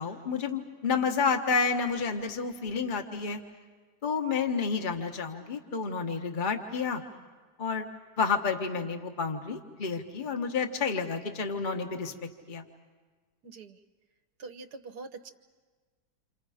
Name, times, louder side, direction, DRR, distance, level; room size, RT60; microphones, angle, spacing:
voice 1, 0.0-3.4 4.0-7.0 7.6-7.9 8.2-12.6, left 5 dB, 30° left, 4 dB, 1.4 m, -30 dB
voice 2, 0.9-1.2 13.4-13.8 14.4-15.3, right 4 dB, 75° right, 9 dB, 1.6 m, -44 dB
28.5 x 27.5 x 5.0 m, 1.4 s
omnidirectional pair, 1.8 m